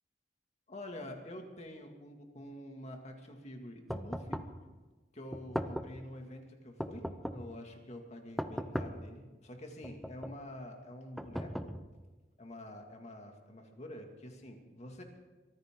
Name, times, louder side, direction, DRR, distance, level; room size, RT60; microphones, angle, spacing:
voice 1, 0.7-4.4 5.1-11.8 12.4-15.0, left 1 dB, 40° left, 3 dB, 2.2 m, -47 dB
sound 1, 3.9-4.6 5.3-6.0 6.8-7.6 8.4-9.1 9.8-10.4 11.2-12.1, equal, ahead, 0.7 m, -39 dB
23.5 x 15.0 x 3.8 m, 1.2 s
head